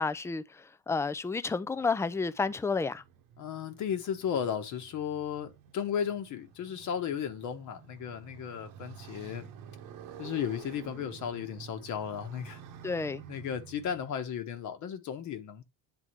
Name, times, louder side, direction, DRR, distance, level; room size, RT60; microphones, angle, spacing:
voice 1, 0.0-3.0 12.8-13.2, left 4 dB, 10° left, 0.3 m, -31 dB
Motorcycle, 1.6-14.2, right 9 dB, 70° right, 1.1 m, -50 dB
voice 2, 3.4-9.5 10.2-12.6 13.3-15.6, left 8 dB, 55° left, 1.2 m, -35 dB
8.7 x 3.6 x 3.1 m
cardioid pair, 115°, 34 cm